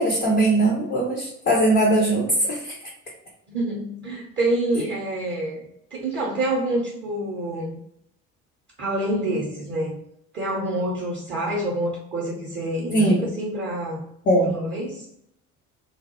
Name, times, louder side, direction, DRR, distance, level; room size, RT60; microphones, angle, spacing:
voice 1, 0.0-2.7 12.9-13.2 14.3-14.5, right 1 dB, 20° left, -1 dB, 0.4 m, -20 dB
voice 2, 3.5-5.6 5.9-7.8 8.8-10.0 10.3-14.0 14.4-15.1, right 1 dB, 25° right, -3 dB, 0.6 m, -27 dB
2.2 x 2.0 x 2.8 m, 0.74 s
figure-of-eight pair, 60°, 44 cm